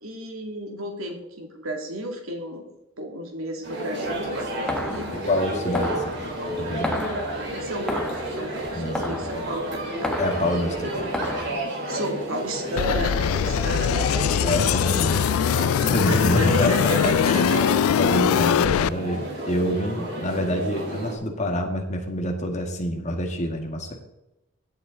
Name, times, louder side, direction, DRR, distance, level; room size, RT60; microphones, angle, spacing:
voice 1, 0.0-2.6 3.0-5.1 7.2-10.1 10.8-11.1 11.8-14.2 16.1-17.8, right 1 dB, 80° right, 3 dB, 2.6 m, -32 dB
sound 1, 3.6-21.1, right 1 dB, 55° right, 3.9 m, -31 dB
sound 2, 4.0-11.5, left 1 dB, 5° left, 1.1 m, -33 dB
voice 2, 5.1-6.9 8.7-9.2 10.2-11.1 14.4-15.3 15.9-16.9 17.2-17.5 18.0-23.9, equal, 35° left, 3 dB, 1.9 m, -27 dB
sound 3, 12.8-18.9, left 9 dB, 85° left, 0.3 m, -22 dB
15.5 x 8.4 x 4.0 m, 0.93 s
head